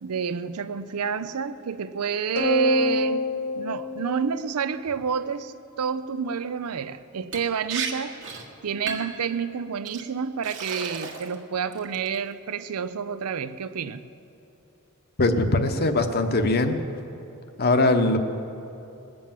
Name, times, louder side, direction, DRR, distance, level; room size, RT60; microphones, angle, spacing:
voice 1, 0.0-3.3 3.5-8.2 8.6-14.0, right 6 dB, 80° right, 0.5 m, -29 dB
sound 1, 2.4-5.0, equal, 70° left, 1.6 m, -25 dB
Liquid, 7.3-7.4 7.7-7.9 8.2-8.5 8.9-9.2 9.9-10.0 10.4-11.3 11.7-12.2, right 6 dB, 60° right, 1.5 m, -33 dB
voice 2, 15.2-16.8 17.6-18.2, left 2 dB, 45° left, 0.9 m, -21 dB
20.0 x 7.8 x 7.3 m
head